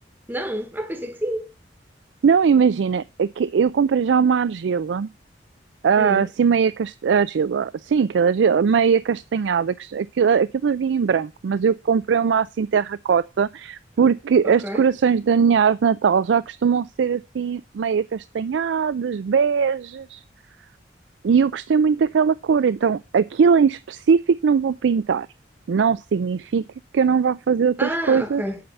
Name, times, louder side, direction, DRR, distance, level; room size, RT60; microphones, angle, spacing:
voice 1, 0.3-1.5 6.0-6.2 14.4-14.8 27.8-28.6, equal, 10° right, 1.1 m, -28 dB
voice 2, 2.2-5.1 5.8-20.2 21.2-25.3 25.7-26.6 26.9-28.4, right 6 dB, 85° right, 0.4 m, -20 dB
8.5 x 5.6 x 5.8 m
head